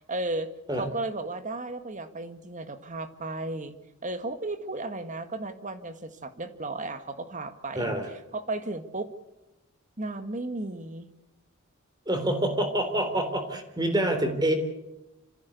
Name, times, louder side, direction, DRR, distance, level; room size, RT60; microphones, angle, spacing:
voice 1, 0.1-3.7 4.0-7.9 8.3-9.1 10.0-11.1, right 2 dB, 35° right, 9 dB, 1.7 m, -34 dB
voice 2, 7.7-8.1 12.1-14.5, right 1 dB, 20° right, 7 dB, 3.5 m, -26 dB
27.5 x 15.0 x 8.2 m, 0.96 s
head